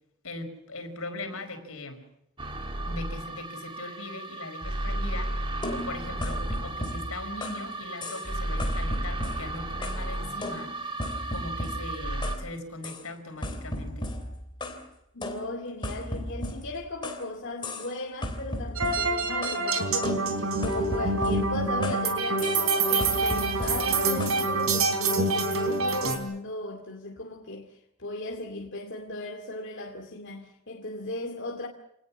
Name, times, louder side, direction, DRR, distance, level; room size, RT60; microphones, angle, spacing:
voice 1, 0.2-2.0 2.8-10.8 11.3-14.2, left 2 dB, 75° left, 4.8 m, -40 dB
sound 1, 2.4-12.3, right 1 dB, 25° right, 2.3 m, -33 dB
sound 2, 5.6-7.7 8.0-8.3 8.6-10.1 10.4-12.4 12.8-13.0 13.4-14.8 15.2-17.3 17.6-17.9 18.2-19.6 20.0-22.1 22.4-22.7 23.0-24.4, left 1 dB, 20° left, 3.3 m, -36 dB
voice 2, 15.1-20.3 20.6-27.7 28.0-31.7, left 2 dB, 55° left, 2.4 m, -37 dB
sound 3, 18.8-26.2, right 3 dB, 80° right, 4.0 m, -26 dB
27.5 x 19.5 x 7.1 m
head